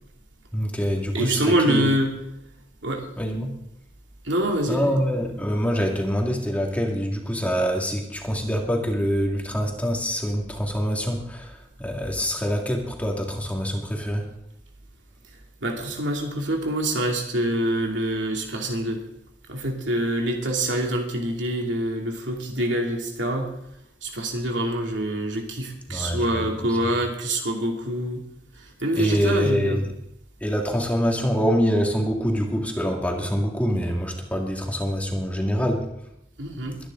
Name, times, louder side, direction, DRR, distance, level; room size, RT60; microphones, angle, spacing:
voice 1, 0.5-1.9 3.2-3.5 4.7-14.3 25.9-26.4 29.0-29.8 30.4-35.9, equal, 10° left, 1 dB, 2.1 m, -25 dB
voice 2, 1.1-2.1 2.8-3.1 4.2-4.9 15.6-19.0 19.5-23.5 24.0-28.2 28.6-29.8 36.4-36.8, right 1 dB, 90° right, 1 dB, 2.7 m, -25 dB
22.5 x 10.0 x 3.8 m, 0.79 s
head